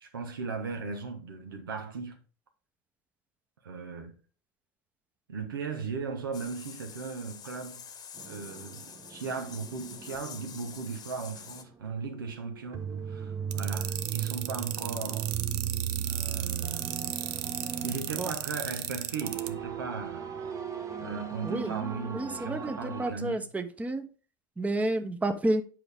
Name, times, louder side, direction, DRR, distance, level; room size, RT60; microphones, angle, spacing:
voice 1, 0.0-2.2 3.6-4.1 5.3-7.8 8.3-15.3 16.0-16.9 17.8-20.3 21.0-23.5, right 4 dB, 90° right, 1.2 m, -37 dB
sound 1, 6.3-11.6, left 7 dB, 35° left, 1.1 m, -47 dB
sound 2, 8.2-11.6 11.8-23.1, right 8 dB, 30° right, 1.1 m, -37 dB
sound 3, 13.5-19.5, right 13 dB, 60° right, 0.6 m, -34 dB
voice 2, 21.4-21.7 22.1-24.0 24.6-25.6, right 2 dB, 15° right, 0.8 m, -30 dB
7.8 x 4.9 x 3.5 m
hypercardioid pair, 85°, 11 cm